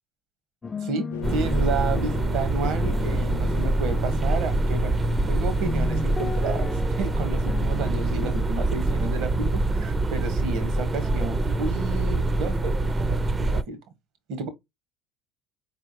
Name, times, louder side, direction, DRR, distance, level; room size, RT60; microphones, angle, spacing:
sound 1, 0.6-9.9, left 3 dB, 20° left, 0.5 m, -35 dB
sound 2, 1.1-6.7, left 9 dB, 85° left, 0.3 m, -41 dB
sound 3, 1.2-13.6, right 2 dB, 25° right, 0.5 m, -25 dB
voice 1, 1.3-5.0 5.3-13.8 14.3-14.5, right 4 dB, 65° right, 1.2 m, -32 dB
4.5 x 3.3 x 2.7 m
hypercardioid pair, 70°, 0 cm